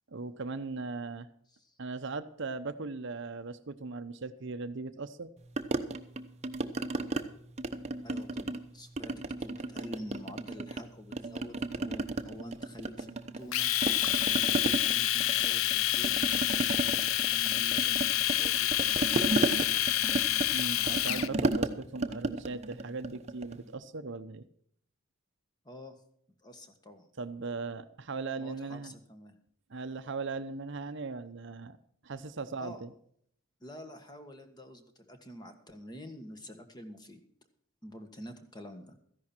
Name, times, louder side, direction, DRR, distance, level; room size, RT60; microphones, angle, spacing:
voice 1, 0.1-1.3 1.8-5.3 20.5-24.4 27.2-28.9 29.7-31.8 32.0-32.9, right 3 dB, 60° right, 11 dB, 0.8 m, -38 dB
sound 1, 5.6-7.2 7.6-8.7 9.0-10.8 11.1-13.5 13.8-23.6, right 2 dB, 30° right, 0.9 m, -33 dB
voice 2, 8.0-13.7 14.8-16.2 17.3-19.8 25.6-26.0 26.4-27.1 28.4-29.4 32.6-32.8 33.6-37.2 37.8-39.0, equal, 20° left, 7 dB, 1.5 m, -47 dB
Domestic sounds home sounds, 13.5-21.3, left 13 dB, 75° left, 0.5 m, -28 dB
14.0 x 11.0 x 4.4 m, 0.65 s
head